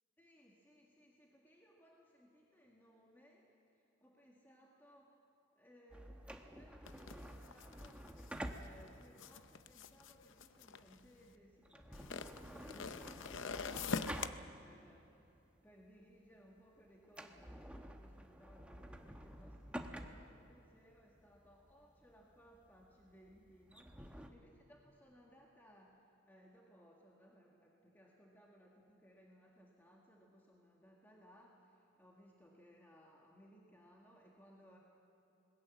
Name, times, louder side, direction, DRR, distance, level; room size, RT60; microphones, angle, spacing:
voice 1, 0.2-5.2 5.5-34.8, equal, 10° left, -2 dB, 1.8 m, -64 dB
sound 1, 5.9-14.9 15.3-15.4 16.0-16.3 16.6-16.7 17.0-24.3, right 1 dB, 5° right, 1.0 m, -50 dB
sound 2, 6.9-11.3 11.9-14.3, left 5 dB, 75° left, 0.7 m, -44 dB
26.5 x 20.5 x 7.2 m, 2.9 s
head